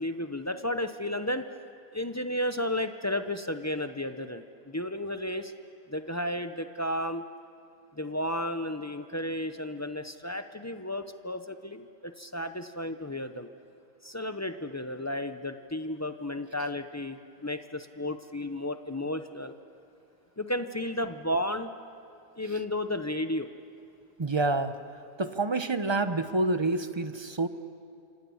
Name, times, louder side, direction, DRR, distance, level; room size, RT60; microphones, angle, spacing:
voice 1, 0.0-1.5 1.9-5.5 5.9-7.2 7.9-13.5 14.0-19.5 20.4-21.7 22.4-23.5, left 1 dB, 25° left, 8 dB, 0.3 m, -33 dB
voice 2, 24.2-24.8 25.2-27.5, right 2 dB, 25° right, 10 dB, 0.6 m, -28 dB
27.0 x 26.5 x 7.1 m, 2.4 s
omnidirectional pair, 1.6 m